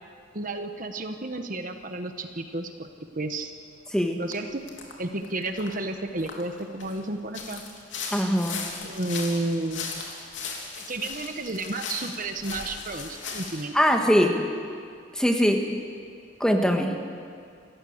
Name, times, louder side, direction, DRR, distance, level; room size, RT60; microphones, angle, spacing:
voice 1, 0.3-2.9 3.1-3.5 4.2-4.6 5.0-7.6 8.8-10.1 10.8-13.7, right 2 dB, 40° right, 7 dB, 1.1 m, -32 dB
sound 1, 4.3-4.4 4.7-4.9 5.2-7.0 7.3-13.6, left 4 dB, 65° left, 3.3 m, -37 dB
voice 2, 8.1-8.6 13.7-14.4 15.1-15.7 16.4-17.0, equal, 5° left, 3 dB, 1.5 m, -22 dB
28.0 x 15.0 x 7.9 m, 2.3 s
head